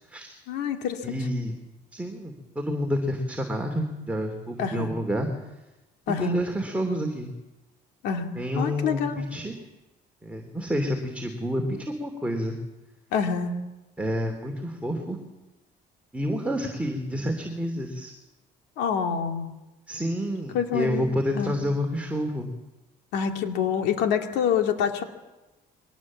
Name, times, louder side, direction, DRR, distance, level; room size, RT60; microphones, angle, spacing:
voice 1, 0.5-1.1 4.6-4.9 6.1-6.4 8.0-9.2 13.1-13.5 18.8-19.5 20.5-21.1 21.3-21.6 23.1-25.0, left 7 dB, 90° left, 4 dB, 2.4 m, -26 dB
voice 2, 1.0-1.6 1.9-5.3 6.2-7.3 8.4-9.6 10.2-12.6 14.0-15.2 16.1-18.1 19.9-22.5, equal, 10° right, 2 dB, 2.9 m, -29 dB
23.0 x 18.5 x 7.5 m, 1.0 s
cardioid pair, 110°, 17 cm